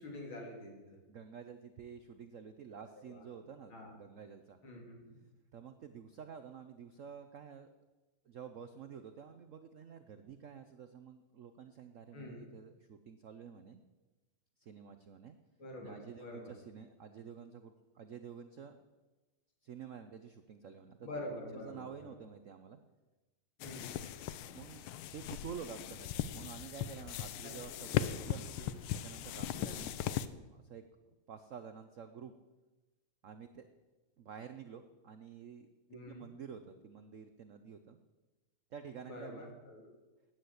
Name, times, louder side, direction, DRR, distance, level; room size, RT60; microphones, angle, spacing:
voice 1, 0.0-1.0 3.0-3.2 3.7-3.9 4.6-5.1 12.1-12.5 15.6-16.5 21.0-22.1 23.6-24.0 27.4-27.5 27.8-27.9 28.6-28.7 29.5-29.8 35.9-36.2 39.1-39.9, left 1 dB, 65° left, 0 dB, 3.8 m, -46 dB
voice 2, 1.1-4.6 5.5-7.7 8.2-13.8 14.6-15.4 15.8-18.8 19.6-21.1 21.5-22.8 24.5-28.5 28.9-30.0 30.2-30.8 31.3-32.3 33.2-33.7 34.2-38.0 38.7-39.5, right 7 dB, 80° right, 9 dB, 0.7 m, -50 dB
sound 1, 23.6-30.3, left 10 dB, 80° left, 1.6 m, -39 dB
12.5 x 9.6 x 8.1 m, 1.2 s
omnidirectional pair, 2.4 m